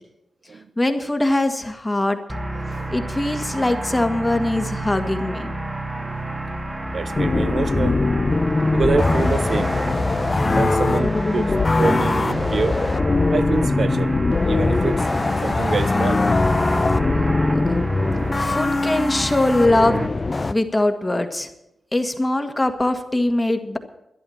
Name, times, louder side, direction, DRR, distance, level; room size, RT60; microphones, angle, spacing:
voice 1, 0.8-2.2 2.9-5.5 17.5-17.6 18.3-20.0 20.5-21.5 21.9-23.8, left 1 dB, 25° left, 6 dB, 1.9 m, -21 dB
sound 1, 2.3-20.1, right 1 dB, 30° right, 1.9 m, -29 dB
voice 2, 2.6-2.9 6.9-8.2 8.7-9.7 10.5-11.5 11.8-12.8 13.3-14.1 14.4-15.1 15.4-16.2, right 4 dB, 60° right, 13 dB, 0.6 m, -26 dB
sound 2, 7.2-20.5, left 3 dB, 40° left, 0.8 m, -21 dB
12.5 x 10.5 x 7.2 m, 0.85 s
supercardioid pair, 40°, 0 cm